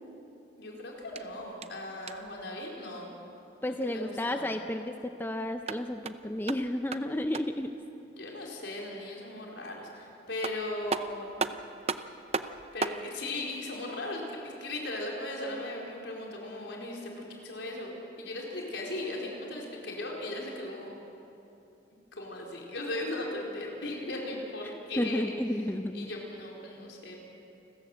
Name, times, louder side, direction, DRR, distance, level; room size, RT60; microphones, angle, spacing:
voice 1, 0.6-3.1 3.9-4.5 8.1-11.4 12.0-12.1 12.7-20.9 22.1-25.3 25.9-27.3, left 1 dB, 75° left, -2 dB, 4.5 m, -38 dB
sound 1, 1.0-2.4 5.4-7.7 10.0-10.1 10.4-13.1, right 4 dB, 35° right, 0.6 m, -36 dB
voice 2, 3.6-7.7 25.0-26.1, left 1 dB, 10° left, 6 dB, 0.6 m, -32 dB
29.0 x 14.0 x 8.0 m, 2.9 s
head